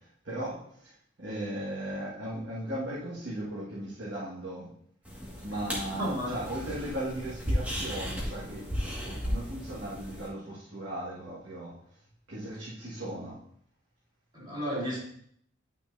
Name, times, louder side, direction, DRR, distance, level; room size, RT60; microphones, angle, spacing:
voice 1, 0.0-4.8 5.4-8.7 9.0-11.8 12.3-13.4, right 1 dB, 65° right, -8 dB, 1.7 m, -37 dB
sound 1, 5.1-10.3, equal, 10° right, 1.7 m, -35 dB
voice 2, 5.9-6.4 14.3-15.0, equal, 25° right, -7 dB, 2.8 m, -32 dB
10.0 x 5.9 x 2.6 m, 0.67 s
head